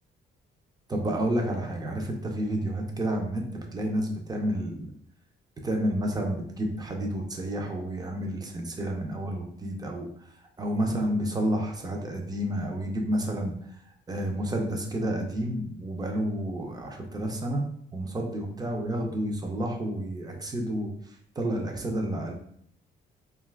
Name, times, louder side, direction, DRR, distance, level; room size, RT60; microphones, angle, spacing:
voice 1, 0.9-4.9 5.6-10.1 10.6-13.6 14.1-17.6 17.9-20.9 21.4-22.3, right 1 dB, 20° right, 2 dB, 0.5 m, -30 dB
2.6 x 2.3 x 3.2 m, 0.66 s
cardioid pair, 150°, 21 cm